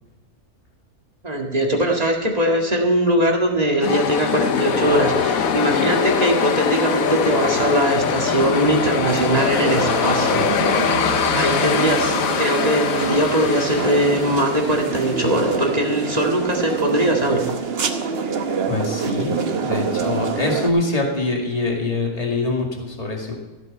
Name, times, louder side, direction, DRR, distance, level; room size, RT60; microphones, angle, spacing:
voice 1, 1.2-11.0 11.3-17.4, right 1 dB, 25° right, 0 dB, 1.9 m, -21 dB
sound 1, 3.8-16.7, left 6 dB, 65° left, 1.2 m, -23 dB
sound 2, 9.1-20.7, right 5 dB, 45° right, 1.0 m, -26 dB
voice 2, 18.7-23.3, left 2 dB, 25° left, 0 dB, 2.2 m, -24 dB
14.5 x 8.1 x 5.5 m, 1.2 s
omnidirectional pair, 1.6 m